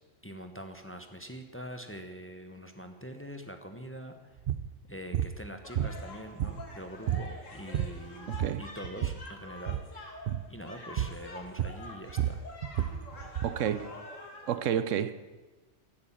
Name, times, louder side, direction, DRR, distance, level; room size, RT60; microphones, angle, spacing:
voice 1, 0.2-4.4 4.9-10.2 10.5-12.4, equal, 10° left, 1.0 m, -44 dB
sound 1, 4.4-4.7 5.1-5.4 5.8-6.8 7.1-7.3 7.6-8.1 8.3-9.3 9.6-9.9 10.3-10.5 11.0-11.2 11.6-13.6, right 10 dB, 60° right, 0.7 m, -31 dB
sound 2, 5.6-14.5, left 2 dB, 85° left, 2.4 m, -47 dB
voice 2, 8.3-8.6 13.4-13.9 14.5-15.1, right 9 dB, 80° right, 1.0 m, -30 dB
16.0 x 8.7 x 7.4 m
omnidirectional pair, 1.3 m